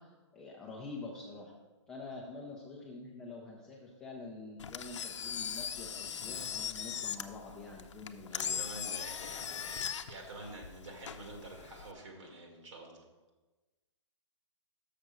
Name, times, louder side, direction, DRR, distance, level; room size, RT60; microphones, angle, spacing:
voice 1, 0.0-1.5 1.9-8.6, left 3 dB, 5° left, -4 dB, 0.4 m, -46 dB
Engine, 4.6-11.9, left 8 dB, 75° left, 0.6 m, -39 dB
voice 2, 8.3-9.8 10.1-13.0, right 2 dB, 80° right, 0 dB, 2.2 m, -48 dB
6.6 x 5.8 x 6.1 m, 1.2 s
hypercardioid pair, 165°, 16 cm